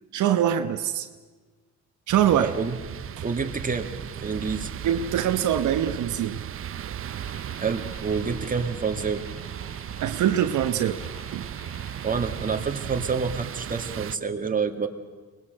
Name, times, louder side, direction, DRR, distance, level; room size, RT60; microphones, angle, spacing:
voice 1, 0.1-1.1 2.1-2.5 3.2-3.3 4.8-6.4 10.0-11.0 11.3-11.5, right 10 dB, 75° right, 8 dB, 1.1 m, -23 dB
sound 1, 2.1-14.2, right 10 dB, 45° right, 0.7 m, -36 dB
voice 2, 2.4-2.8 3.2-3.9 4.2-4.7 7.6-9.2 12.0-14.9, right 5 dB, 25° right, 5 dB, 2.2 m, -28 dB
sound 2, 7.1-12.6, left 1 dB, 60° left, 7.9 m, -49 dB
24.5 x 20.0 x 7.8 m, 1.4 s
cardioid pair, 90°, 30 cm